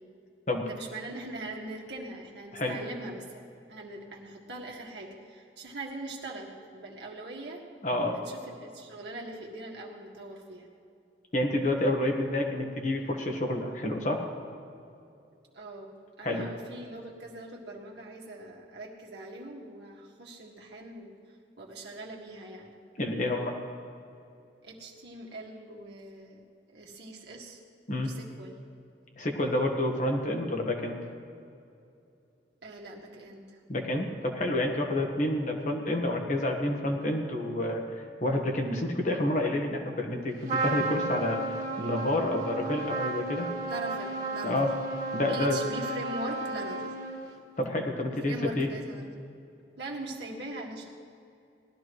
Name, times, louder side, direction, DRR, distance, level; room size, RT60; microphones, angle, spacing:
voice 1, 0.6-7.6 8.1-10.7 15.5-21.1 21.6-22.8 24.6-26.4 26.7-27.6 28.0-28.5 32.6-33.6 43.7-44.6 45.3-46.9 48.2-49.1 49.8-50.9, right 2 dB, 65° right, -1 dB, 1.8 m, -42 dB
voice 2, 7.8-8.2 11.3-14.2 16.2-16.5 23.0-23.5 27.9-28.1 29.2-31.0 33.7-37.8 38.2-43.5 44.4-44.7 45.1-45.6 47.6-48.7, left 1 dB, 40° left, 2 dB, 1.3 m, -29 dB
Trumpet, 40.5-47.4, right 2 dB, 45° right, 2.2 m, -33 dB
19.0 x 13.0 x 3.1 m, 2.6 s
head